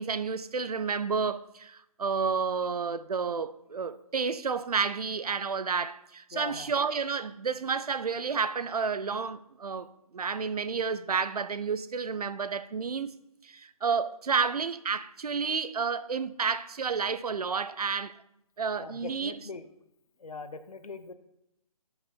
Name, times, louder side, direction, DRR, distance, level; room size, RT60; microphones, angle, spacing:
voice 1, 0.0-9.9 10.1-13.1 13.4-18.2 18.6-19.4, right 5 dB, 75° right, 0.5 m, -30 dB
voice 2, 6.3-6.7 18.8-19.6 20.2-21.1, left 4 dB, 75° left, 0.7 m, -41 dB
5.8 x 5.5 x 4.3 m
figure-of-eight pair, 145°, 19 cm